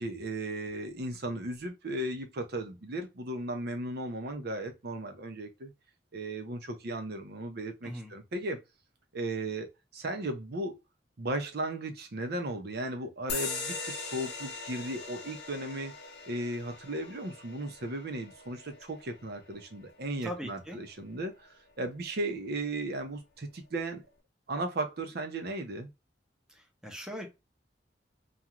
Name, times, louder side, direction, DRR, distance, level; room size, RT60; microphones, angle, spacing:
voice 1, 0.0-5.7 6.1-8.6 9.1-10.8 11.2-15.9 16.3-24.0 24.5-25.9, right 1 dB, 60° right, 0.7 m, -36 dB
sound 1, 13.3-20.4, left 4 dB, 75° left, 0.7 m, -41 dB
voice 2, 20.2-20.8 26.6-27.3, equal, 5° right, 0.8 m, -40 dB
2.5 x 2.3 x 2.9 m
head